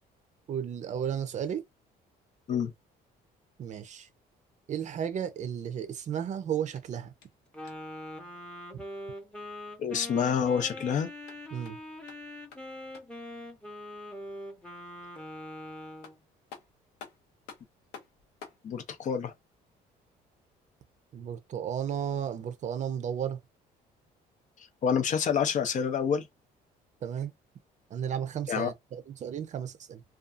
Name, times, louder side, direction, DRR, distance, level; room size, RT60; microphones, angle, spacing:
voice 1, 0.5-1.6 3.6-4.1 4.7-7.1 8.7-8.8 11.5-11.8 21.1-23.4 27.0-27.3 27.9-30.0, right 8 dB, 45° right, 0.5 m, -33 dB
sound 1, 6.7-8.0 11.0-13.3 15.6-15.7 16.0-18.7, left 6 dB, 85° left, 0.7 m, -51 dB
Wind instrument woodwind instrument, 7.5-16.1, left 1 dB, 5° left, 0.7 m, -43 dB
voice 2, 9.8-11.1 18.6-19.3 24.8-26.3 28.5-28.7, left 7 dB, 50° left, 0.5 m, -27 dB
2.5 x 2.3 x 2.4 m
cardioid pair, 110°, 17 cm